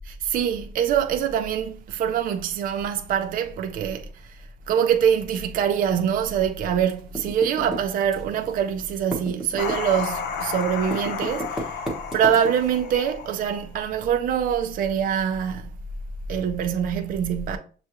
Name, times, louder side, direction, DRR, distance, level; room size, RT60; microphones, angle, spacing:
voice 1, 0.1-4.1 4.7-11.7 12.1-15.7 16.3-17.6, right 8 dB, 50° right, 0.4 m, -24 dB
Typing, 6.8-8.5 8.8-12.8, right 1 dB, 5° right, 1.0 m, -33 dB
sound 1, 9.6-13.8, left 6 dB, 75° left, 0.6 m, -32 dB
6.7 x 2.3 x 2.9 m
cardioid pair, 155°, 18 cm